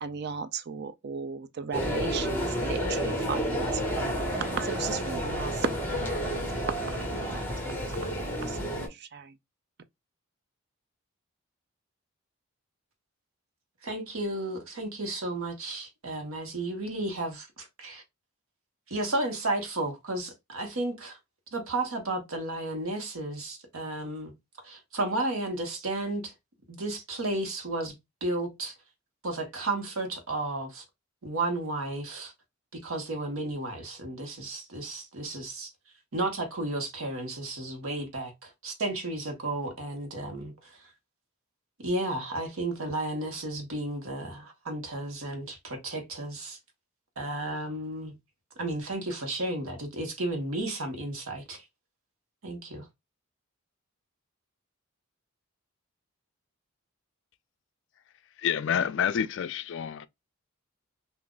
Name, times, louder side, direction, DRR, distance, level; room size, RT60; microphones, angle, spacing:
voice 1, 0.0-4.1 4.6-6.1 6.4-7.7 8.0-9.3, right 5 dB, 45° right, 0.4 m, -36 dB
sound 1, 1.7-8.9, equal, 10° left, 0.9 m, -30 dB
voice 2, 13.8-18.0 18.9-21.2 21.5-24.3 24.6-26.3 26.7-27.9 28.2-28.7 29.2-30.8 31.2-32.3 32.8-35.7 36.1-40.8 41.8-46.6 47.2-48.1 48.6-51.6 52.4-52.9, right 2 dB, 70° right, 1.1 m, -33 dB
voice 3, 58.4-60.1, left 8 dB, 55° left, 0.3 m, -28 dB
3.8 x 2.5 x 2.2 m
head